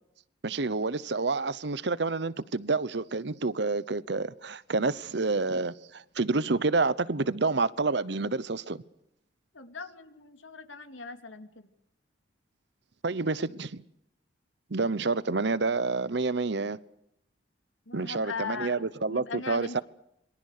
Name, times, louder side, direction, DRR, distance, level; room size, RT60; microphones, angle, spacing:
voice 1, 0.4-8.8 13.0-13.8 14.7-16.8 17.9-19.8, right 3 dB, 60° right, 0.9 m, -28 dB
voice 2, 9.5-11.7 17.9-18.8 19.1-19.8, left 5 dB, 85° left, 2.6 m, -39 dB
27.0 x 24.0 x 6.6 m
head